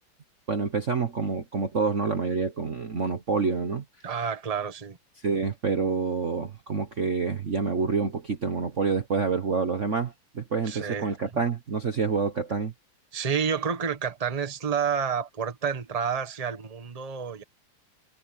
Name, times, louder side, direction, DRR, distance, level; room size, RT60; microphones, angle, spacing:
voice 1, 0.5-3.8 5.2-12.7, right 5 dB, 40° right, 1.3 m, -27 dB
voice 2, 4.0-5.0 10.7-11.1 13.1-17.4, right 7 dB, 20° right, 1.3 m, -29 dB
omnidirectional pair, 2.4 m